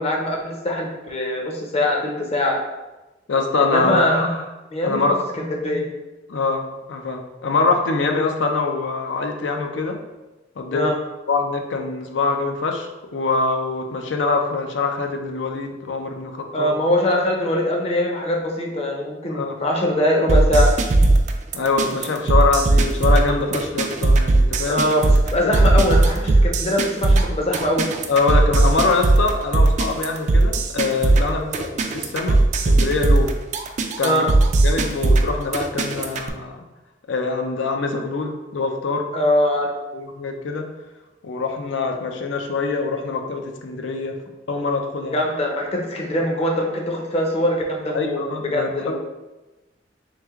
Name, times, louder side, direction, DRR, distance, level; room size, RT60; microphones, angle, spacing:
voice 1, 0.0-2.6 3.6-4.4 4.7-5.9 10.7-11.0 16.5-20.7 24.7-27.9 31.4-31.5 34.0-34.3 39.1-39.7 45.1-49.0, left 1 dB, 35° left, 0 dB, 0.6 m, -22 dB
voice 2, 3.3-4.0 4.8-5.2 6.3-10.0 10.6-10.9 11.3-16.7 19.3-19.6 21.5-24.8 25.4-25.6 28.1-32.4 32.6-33.3 34.0-34.2 34.6-36.6 37.1-39.0 39.9-40.7 41.2-44.2 44.5-45.2 47.9-49.0, left 3 dB, 80° left, 4 dB, 0.5 m, -24 dB
sound 1, 20.3-36.3, right 2 dB, 40° right, 0.3 m, -18 dB
3.3 x 3.2 x 3.5 m, 1.1 s
head